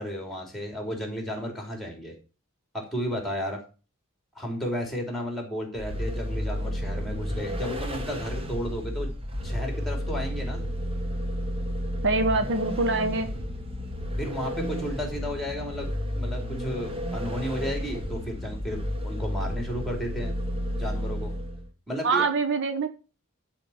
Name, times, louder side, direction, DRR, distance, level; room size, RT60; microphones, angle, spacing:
voice 1, 0.0-2.2 2.7-3.6 4.3-9.1 9.4-10.7 14.2-20.4 20.8-21.3 21.9-22.2, equal, ahead, 2 dB, 3.3 m, -33 dB
Vehicle, 5.8-21.7, equal, 25° right, 1.5 m, -32 dB
voice 2, 12.0-13.3 22.0-22.9, right 3 dB, 60° right, 8 dB, 1.0 m, -24 dB
12.0 x 4.5 x 7.1 m, 0.34 s
head